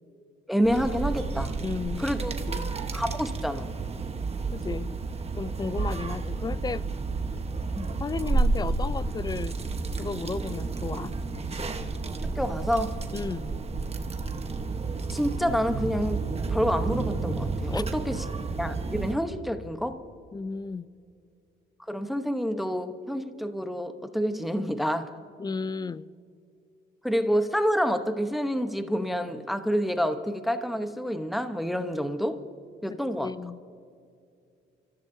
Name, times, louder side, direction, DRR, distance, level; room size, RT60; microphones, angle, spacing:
voice 1, 0.5-1.5 2.0-2.3 2.9-3.7 7.7-7.9 12.2-13.0 15.1-18.2 18.6-20.0 21.9-25.1 27.0-32.4 32.8-33.3, equal, ahead, 1.0 m, -28 dB
sound 1, 0.6-19.1, right 3 dB, 30° right, 1.2 m, -31 dB
voice 2, 1.6-2.1 2.5-2.7 4.5-5.0 5.4-6.8 8.0-9.6 9.9-11.1 13.1-13.5 17.7-17.8 20.3-20.9 25.4-26.1 32.9-33.6, left 4 dB, 20° left, 0.4 m, -34 dB
28.5 x 14.5 x 2.7 m
cardioid pair, 90°, 20 cm